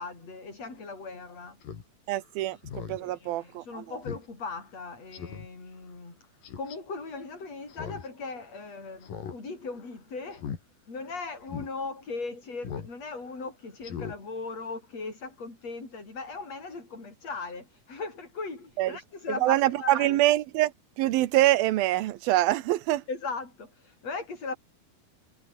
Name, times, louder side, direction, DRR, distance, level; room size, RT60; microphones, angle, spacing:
voice 1, 0.0-1.6 2.5-2.6 3.0-10.5 10.9-20.2 23.1-24.6, left 4 dB, 45° left, 8.5 m, -38 dB
Speech synthesizer, 1.6-1.8 2.2-2.3 2.6-3.0 3.4-3.5 4.1-4.3 4.6-4.7 5.1-5.5 6.4-6.8 7.7-8.1 8.4-8.5 9.0-9.4 9.7-9.9 10.3-10.6 11.0-11.1 11.5-11.7 12.6-12.9 13.2-13.4 13.8-14.2 14.5-14.6, left 7 dB, 70° left, 4.7 m, -38 dB
voice 2, 2.1-3.8 18.8-18.9 19.4-20.7 21.0-23.0, right 15 dB, 90° right, 2.9 m, -25 dB
omnidirectional pair, 4.1 m